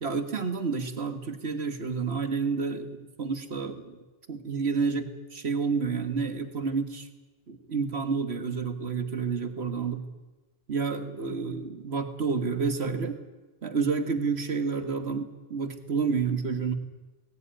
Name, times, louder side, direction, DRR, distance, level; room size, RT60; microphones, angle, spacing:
voice 1, 0.0-4.0 4.3-7.1 7.5-10.0 10.7-13.2 13.6-16.7, right 5 dB, 60° right, 8 dB, 1.9 m, -29 dB
18.5 x 16.5 x 8.9 m, 1.2 s
omnidirectional pair, 1.3 m